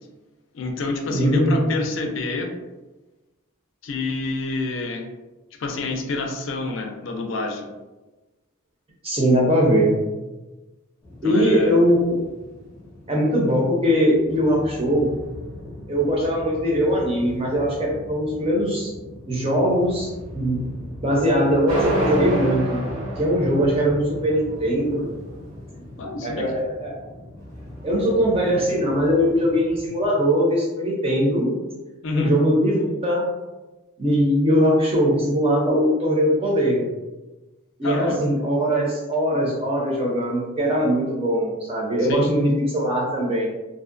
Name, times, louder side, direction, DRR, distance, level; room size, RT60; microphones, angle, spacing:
voice 1, 0.5-2.5 3.8-5.1 5.6-7.7 11.2-11.9 26.0-26.5 32.0-32.3 37.8-38.2 42.1-42.3, left 3 dB, 65° left, 3 dB, 0.4 m, -28 dB
voice 2, 1.1-1.6 9.0-10.0 11.2-12.0 13.1-15.1 15.9-18.9 19.3-20.7 21.0-22.8 23.2-25.1 26.2-26.9 27.8-31.5 32.1-33.3 34.0-36.8 37.8-43.5, equal, 25° right, -3 dB, 0.6 m, -21 dB
sound 1, 11.0-30.1, left 1 dB, 15° left, 0.6 m, -40 dB
sound 2, 21.7-24.6, right 1 dB, 80° right, 1.0 m, -27 dB
2.6 x 2.1 x 2.4 m, 1.2 s
head